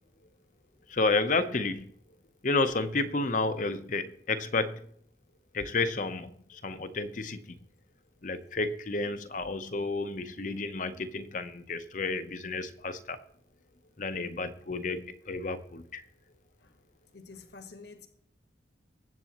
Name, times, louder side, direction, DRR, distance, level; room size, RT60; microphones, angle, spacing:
voice 1, 0.9-1.9 2.4-4.9 5.5-7.6 8.2-13.2 14.0-16.0, left 3 dB, 45° left, 10 dB, 0.8 m, -31 dB
voice 2, 17.1-18.1, left 4 dB, 65° left, 6 dB, 1.4 m, -48 dB
20.5 x 8.2 x 3.0 m, 0.64 s
head